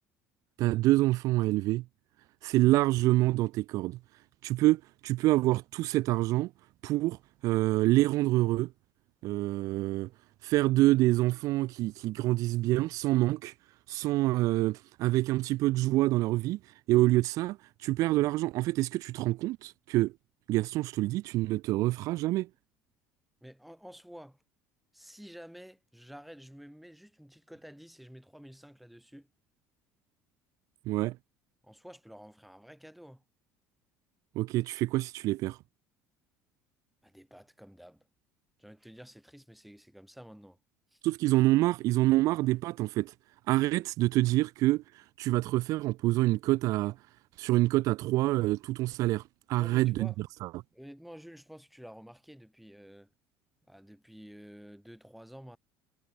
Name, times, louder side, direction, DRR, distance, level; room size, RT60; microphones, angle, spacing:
voice 1, 0.6-1.8 2.4-4.0 4.4-6.5 6.8-7.2 7.4-8.7 9.2-10.1 10.4-13.5 13.9-16.6 16.9-20.1 20.5-22.5 30.9-31.2 34.3-35.6 41.0-43.1 43.5-47.0 47.4-49.2 49.5-50.1 50.4-50.6, right 18 dB, 65° right, 0.9 m, -26 dB
voice 2, 23.4-24.4 24.9-29.3 31.6-33.2 37.0-38.1 38.6-40.6 40.9-41.0 49.6-50.2 50.7-53.1 53.7-55.6, equal, ahead, 6.3 m, -50 dB
cardioid pair, 120°, 6 cm